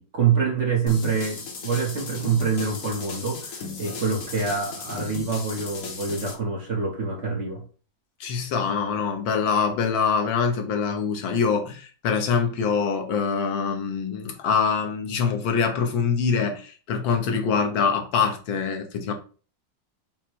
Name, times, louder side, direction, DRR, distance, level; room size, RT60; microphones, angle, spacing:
voice 1, 0.0-7.6, right 5 dB, 50° right, 1.0 m, -26 dB
sound 1, 0.9-6.3, left 4 dB, 55° left, 1.2 m, -36 dB
voice 2, 8.2-19.1, left 6 dB, 85° left, 1.6 m, -24 dB
5.6 x 2.1 x 4.5 m
omnidirectional pair, 2.0 m